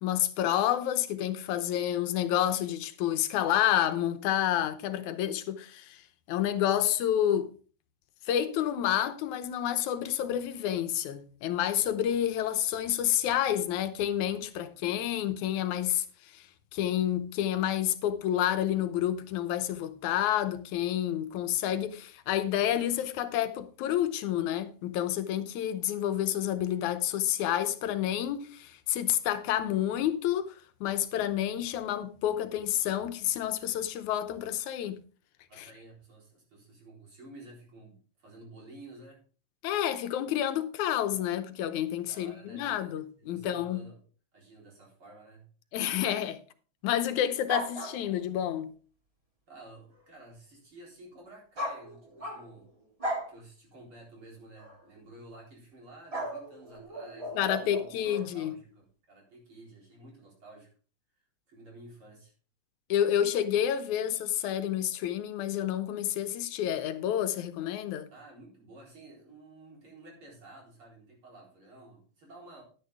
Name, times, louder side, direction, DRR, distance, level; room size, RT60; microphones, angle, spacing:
voice 1, 0.0-6.0 6.3-7.5 8.3-16.4 16.7-30.6 30.8-35.0 35.6-35.7 39.6-43.8 45.7-46.4 46.8-48.7 57.4-58.6 62.9-68.1, left 11 dB, 85° left, 2.2 m, -29 dB
voice 2, 35.5-39.2 41.9-42.9 43.2-44.0 44.3-45.5 49.5-52.7 53.3-60.7 61.5-62.3 68.1-72.6, right 2 dB, 45° right, 4.7 m, -52 dB
sound 1, 47.5-48.4 51.6-52.6 53.0-53.3 54.6-54.8 56.1-58.3, equal, 15° right, 1.8 m, -36 dB
11.0 x 9.5 x 3.5 m
omnidirectional pair, 3.3 m